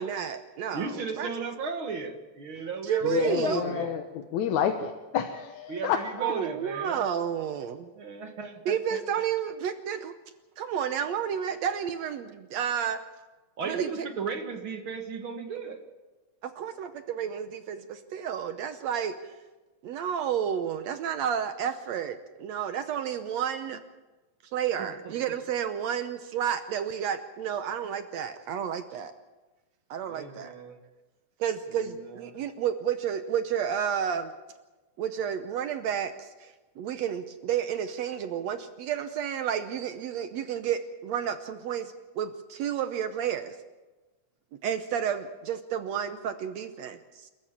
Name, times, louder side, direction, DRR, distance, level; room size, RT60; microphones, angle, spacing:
voice 1, 0.0-1.3 2.8-3.8 6.2-7.9 8.7-10.1 10.6-13.0 13.6-14.1 16.4-19.4 19.8-23.8 24.5-29.1 29.9-30.6 31.4-34.4 35.0-43.6 44.6-47.3, right 8 dB, 70° right, 9 dB, 2.0 m, -31 dB
voice 2, 0.7-4.0 5.7-7.0 7.9-9.0 13.6-15.8 24.8-25.1 30.1-30.8 31.7-32.4, right 4 dB, 50° right, 6 dB, 2.1 m, -36 dB
voice 3, 3.0-6.0, left 9 dB, 80° left, 5 dB, 2.5 m, -29 dB
29.0 x 13.5 x 7.4 m, 1.2 s
omnidirectional pair, 3.4 m